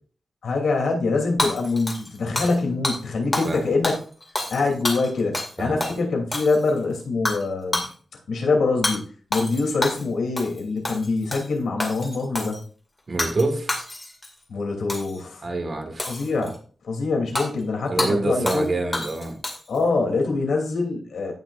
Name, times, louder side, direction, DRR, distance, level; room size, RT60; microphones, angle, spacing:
voice 1, 0.4-4.0 4.5-7.8 8.3-9.0 9.3-12.6 14.5-15.5 16.1-16.6 16.8-18.7 19.7-21.3, left 3 dB, 85° left, 1 dB, 2.9 m, -24 dB
Hammer / Shatter, 1.4-2.6 2.8-3.0 3.3-3.6 3.8-5.5 5.8-6.0 6.3-6.8 7.3-7.4 7.7-7.9 8.8-9.0 9.3-10.1 10.4-10.6 10.8-11.5 11.8-12.6 13.2-13.4 13.7-14.3 14.9-15.2 16.0-16.6 17.4-17.5 18.0-18.1 18.5-18.7 18.9-19.8, left 2 dB, 20° left, 2.2 m, -28 dB
voice 2, 3.2-3.7 5.6-6.0 13.1-13.7 15.4-16.1 17.9-19.4, right 2 dB, 35° right, 6 dB, 1.6 m, -27 dB
16.5 x 6.0 x 2.5 m, 0.41 s
wide cardioid pair, 160°, 0 cm